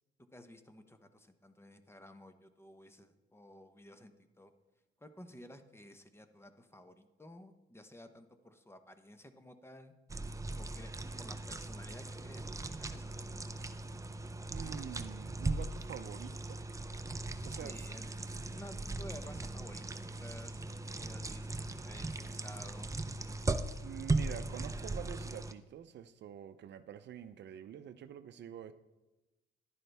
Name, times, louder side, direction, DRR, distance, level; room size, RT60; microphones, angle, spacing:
voice 1, 0.3-4.5 5.0-9.9 10.6-10.9 11.2-13.7 17.5-18.1 18.5-20.6 21.0-22.9, left 1 dB, 10° left, 9 dB, 0.9 m, -54 dB
sound 1, 10.1-25.5, right 2 dB, 15° right, 0.6 m, -39 dB
voice 2, 14.5-16.6 17.5-17.9 23.8-28.7, right 9 dB, 60° right, 11 dB, 0.6 m, -46 dB
11.0 x 10.5 x 3.4 m, 1.0 s
cardioid pair, 90°, 20 cm